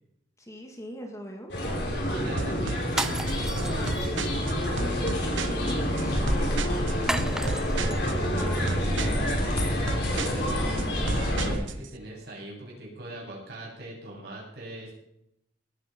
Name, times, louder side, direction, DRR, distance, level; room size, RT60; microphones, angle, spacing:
voice 1, 0.4-1.5 4.7-8.9, equal, 15° left, 2 dB, 2.1 m, -40 dB
sound 1, 1.5-11.5, equal, 65° left, 5.3 m, -27 dB
voice 2, 1.7-4.0 10.0-10.9 11.2-14.9, right 1 dB, 60° right, -3 dB, 7.7 m, -42 dB
sound 2, 2.4-11.9, right 4 dB, 90° right, 0.9 m, -35 dB
sound 3, 2.9-4.4 7.1-8.0, right 1 dB, 5° right, 0.6 m, -33 dB
19.0 x 10.0 x 5.3 m, 0.79 s
head